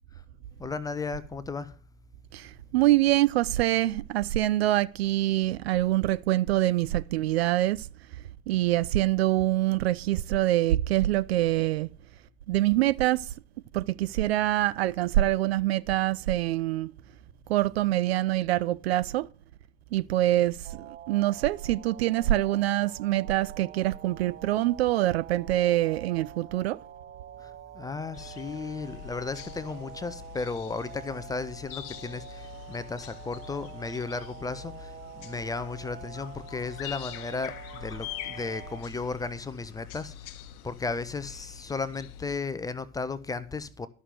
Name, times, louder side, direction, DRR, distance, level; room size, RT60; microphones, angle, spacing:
voice 1, 0.6-1.7 27.4-40.4 40.6-43.9, left 4 dB, 10° left, 0.6 m, -35 dB
voice 2, 2.3-7.9 8.5-11.9 12.5-13.3 13.7-16.9 17.5-19.3 19.9-26.8, right 15 dB, 45° right, 0.5 m, -25 dB
sound 1, 20.6-38.8, right 10 dB, 25° right, 1.1 m, -47 dB
sound 2, 28.1-42.4, left 11 dB, 45° left, 1.1 m, -44 dB
12.5 x 6.3 x 7.7 m
figure-of-eight pair, 85°, 44 cm